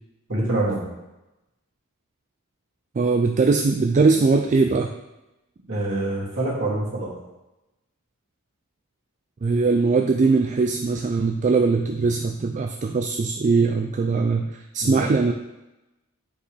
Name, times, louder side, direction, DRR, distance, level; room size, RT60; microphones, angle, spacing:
voice 1, 0.3-0.8 5.7-7.1 14.8-15.1, right 2 dB, 55° right, -6 dB, 2.5 m, -25 dB
voice 2, 3.0-4.9 9.4-15.3, right 4 dB, 35° right, 4 dB, 0.3 m, -21 dB
8.1 x 5.3 x 3.3 m, 0.98 s
head